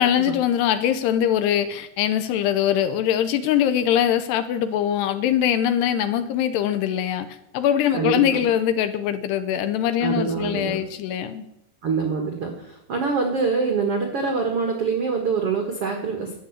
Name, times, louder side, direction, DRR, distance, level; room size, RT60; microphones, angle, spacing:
voice 1, 0.0-7.3 7.5-11.4, left 10 dB, 75° left, 11 dB, 2.7 m, -22 dB
voice 2, 7.9-8.5 10.0-10.8 11.8-16.3, right 5 dB, 70° right, 3 dB, 1.3 m, -25 dB
13.0 x 9.3 x 8.0 m, 0.82 s
omnidirectional pair, 5.3 m